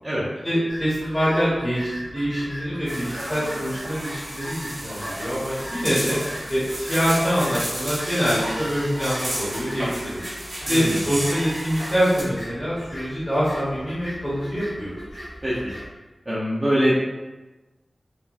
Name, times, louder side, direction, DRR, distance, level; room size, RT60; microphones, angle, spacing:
voice 1, 0.4-6.2 6.5-10.2 10.6-14.9, equal, 15° left, -11 dB, 0.9 m, -25 dB
sound 1, 0.7-15.9, equal, 50° left, 0.9 m, -39 dB
sound 2, 2.9-12.2, right 1 dB, 70° right, 1.1 m, -32 dB
voice 2, 10.7-11.0 15.4-15.7 16.3-16.9, equal, 25° right, -10 dB, 0.6 m, -23 dB
3.3 x 2.1 x 2.5 m, 1.1 s
wide cardioid pair, 80°, 0 cm